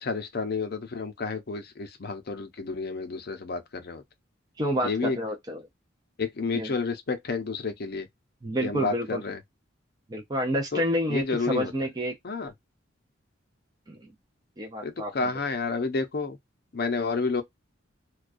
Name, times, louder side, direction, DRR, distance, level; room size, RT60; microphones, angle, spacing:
voice 1, 0.0-4.0 4.8-5.2 6.2-8.1 8.6-9.4 10.7-10.8 11.1-11.7 12.2-12.5 14.8-16.4 16.7-17.4, left 4 dB, 50° left, 0.6 m, -30 dB
voice 2, 4.6-5.6 6.5-6.8 8.4-9.2 10.1-12.2 13.9-14.1 14.6-15.1, equal, 20° right, 0.4 m, -29 dB
2.3 x 2.2 x 2.4 m
head